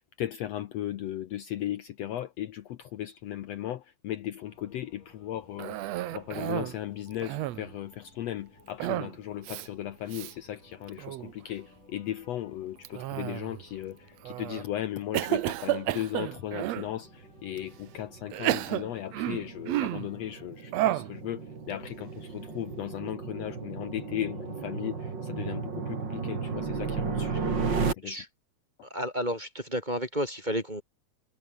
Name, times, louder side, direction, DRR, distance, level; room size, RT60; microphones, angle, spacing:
voice 1, 0.0-5.8 6.1-28.2, left 12 dB, 65° left, 1.8 m, -36 dB
sound 1, 4.5-20.5, left 3 dB, 90° left, 9.0 m, -58 dB
Cough, 5.6-6.8 7.1-7.8 8.8-9.2 9.4-9.7 10.1-10.3 10.9-11.3 12.9-13.6 14.2-14.6 15.1-16.9 17.6-17.7 18.3-20.1 20.7-21.2, right 15 dB, 70° right, 1.8 m, -31 dB
sound 2, 17.0-27.9, right 5 dB, 35° right, 3.2 m, -34 dB
voice 2, 28.9-30.8, equal, 15° right, 2.6 m, -31 dB
omnidirectional pair, 3.6 m